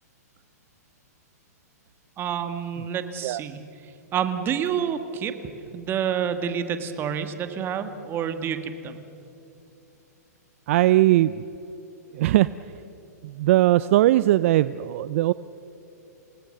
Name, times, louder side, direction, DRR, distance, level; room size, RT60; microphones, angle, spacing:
voice 1, 2.2-3.6 4.1-5.3 5.7-9.0, right 8 dB, 25° right, 9 dB, 1.8 m, -28 dB
voice 2, 10.7-11.4 12.1-12.5 13.2-15.3, right 15 dB, 50° right, 16 dB, 0.5 m, -19 dB
28.5 x 18.5 x 6.7 m, 2.9 s
hypercardioid pair, 130°, 9 cm